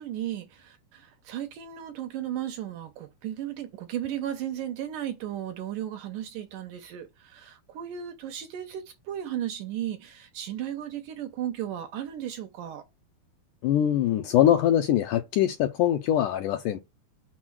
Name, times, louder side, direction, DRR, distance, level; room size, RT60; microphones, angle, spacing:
voice 1, 0.0-12.8, right 11 dB, 75° right, 2.1 m, -35 dB
voice 2, 13.6-16.8, left 11 dB, 75° left, 1.9 m, -23 dB
6.3 x 4.1 x 6.1 m
omnidirectional pair, 4.4 m